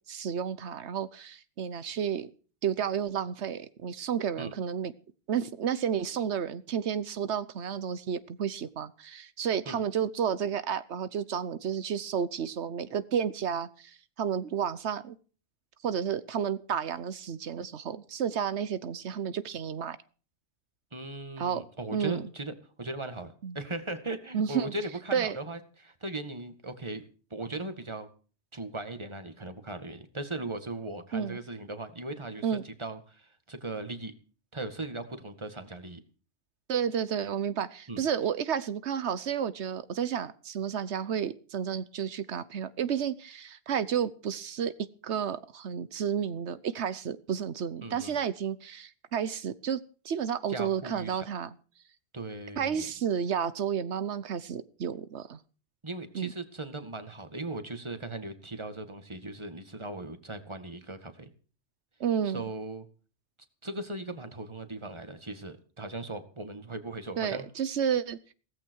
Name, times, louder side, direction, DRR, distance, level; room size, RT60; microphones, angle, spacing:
voice 1, 0.1-2.3 2.6-4.9 5.3-15.2 15.8-20.0 21.4-21.6 21.9-22.2 23.4-23.6 24.3-24.7 25.1-25.4 31.1-31.4 32.4-32.6 36.7-44.7 45.0-49.8 50.0-51.5 52.6-55.4 56.1-56.3 62.0-62.4 67.2-68.3, right 8 dB, 85° right, 14 dB, 1.2 m, -31 dB
voice 2, 20.9-27.0 27.3-28.1 28.5-34.1 34.5-36.0 37.9-38.0 47.8-48.2 50.5-51.3 52.1-52.9 55.8-61.3 62.3-62.9 63.6-67.5, right 2 dB, 25° right, 8 dB, 2.1 m, -38 dB
17.0 x 15.0 x 4.7 m, 0.39 s
omnidirectional pair, 1.1 m